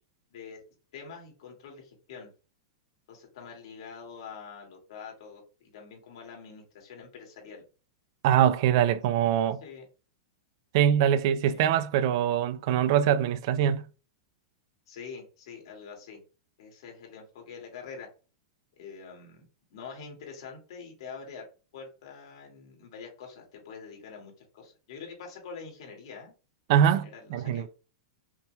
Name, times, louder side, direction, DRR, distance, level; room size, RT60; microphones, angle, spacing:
voice 1, 0.9-2.3 3.1-7.6 9.6-9.9 11.4-11.6 14.9-16.2 16.6-18.1 18.8-21.5 21.7-26.3 27.0-27.7, left 5 dB, 70° left, 2.0 m, -45 dB
voice 2, 8.2-9.6 10.7-13.9 26.7-27.7, right 10 dB, 50° right, 0.3 m, -23 dB
5.7 x 3.1 x 2.3 m
supercardioid pair, 150°, 3 cm